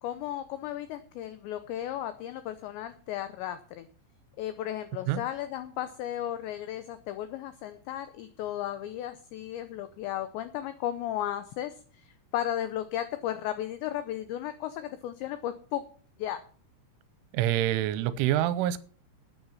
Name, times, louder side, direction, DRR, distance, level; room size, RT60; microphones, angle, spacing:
voice 1, 0.0-3.9 4.4-15.8 16.2-16.4, left 12 dB, 80° left, 11 dB, 2.6 m, -35 dB
voice 2, 17.3-18.8, right 12 dB, 80° right, 15 dB, 3.0 m, -26 dB
13.0 x 9.3 x 5.5 m, 0.43 s
omnidirectional pair, 6.0 m